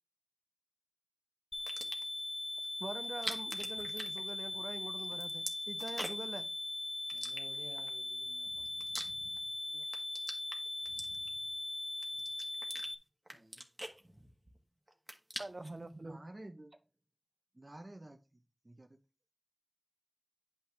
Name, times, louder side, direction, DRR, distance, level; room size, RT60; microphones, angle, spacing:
sound 1, 1.5-12.9, left 2 dB, 65° left, 0.8 m, -40 dB
sound 2, 1.5-2.2 3.0-4.7 5.0-6.4 7.1-7.9 8.4-9.5 9.8-11.5 12.0-12.9 13.3-14.6 14.9-15.8, right 1 dB, 25° right, 1.6 m, -45 dB
voice 1, 2.8-6.5 9.7-9.8 15.4-16.2, right 2 dB, 65° right, 0.5 m, -45 dB
voice 2, 7.1-8.7 13.3-13.6, right 1 dB, 85° right, 2.0 m, -56 dB
voice 3, 16.0-16.8 17.5-19.0, right 1 dB, 45° right, 0.9 m, -52 dB
9.9 x 5.8 x 3.5 m
wide cardioid pair, 45°, 0 cm